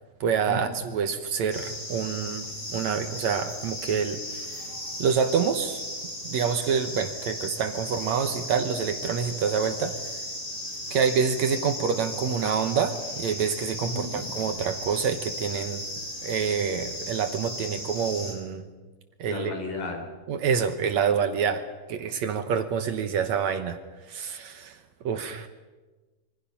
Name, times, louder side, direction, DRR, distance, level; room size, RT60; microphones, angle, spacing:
voice 1, 0.2-4.6 5.0-5.9 6.2-10.0 10.9-15.9 16.2-18.7 19.2-19.5 20.3-21.6 21.9-23.8 24.1-24.8 25.0-25.5, right 6 dB, 65° right, 8 dB, 2.1 m, -27 dB
sound 1, 1.5-18.3, left 1 dB, 40° left, 7.4 m, -36 dB
voice 2, 13.9-14.3 19.3-20.1, left 3 dB, 75° left, 4 dB, 5.6 m, -33 dB
26.5 x 23.5 x 5.7 m, 1.3 s
omnidirectional pair, 3.9 m